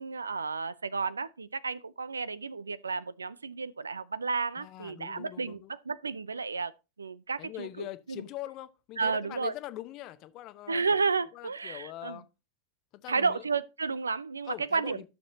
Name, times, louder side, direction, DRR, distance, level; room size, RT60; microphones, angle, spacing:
voice 1, 0.0-6.7 7.0-8.2 9.0-9.5 10.7-12.2 13.1-15.1, right 4 dB, 75° right, 0.4 m, -32 dB
voice 2, 4.6-5.7 7.4-10.8 11.3-12.3 12.9-13.4 14.5-15.1, left 14 dB, 40° left, 0.8 m, -42 dB
14.0 x 6.7 x 2.7 m
figure-of-eight pair, 90°, 0 cm